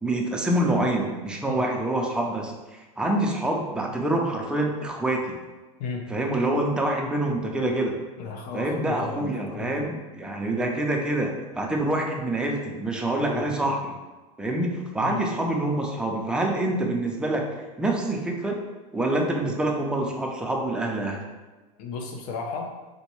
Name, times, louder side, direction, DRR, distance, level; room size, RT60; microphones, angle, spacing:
voice 1, 0.0-5.4 6.1-8.0 8.5-13.9 14.4-18.6 18.9-21.2, right 1 dB, 5° right, 0 dB, 0.4 m, -26 dB
voice 2, 8.2-9.9 10.5-10.7 13.2-13.6 15.0-15.2 21.8-22.7, left 4 dB, 50° left, 2 dB, 0.6 m, -34 dB
3.7 x 2.2 x 3.0 m, 1.2 s
hypercardioid pair, 110°, 20 cm